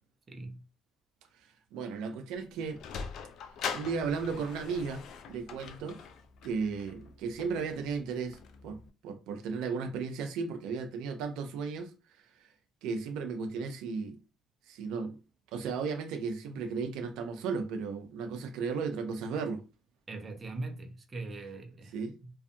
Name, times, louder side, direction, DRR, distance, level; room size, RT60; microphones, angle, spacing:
voice 1, 0.3-0.6 20.1-21.9 22.2-22.3, right 2 dB, 30° right, 0.7 m, -41 dB
voice 2, 1.7-2.8 3.7-5.0 5.3-6.0 6.4-8.8 9.0-11.9 12.4-12.5 12.8-14.2 14.7-15.2 15.5-19.6 21.9-22.1, right 5 dB, 85° right, 0.5 m, -35 dB
Sliding door, 2.3-8.9, left 6 dB, 70° left, 0.3 m, -43 dB
2.5 x 2.4 x 2.5 m
cardioid pair, 90°, 0 cm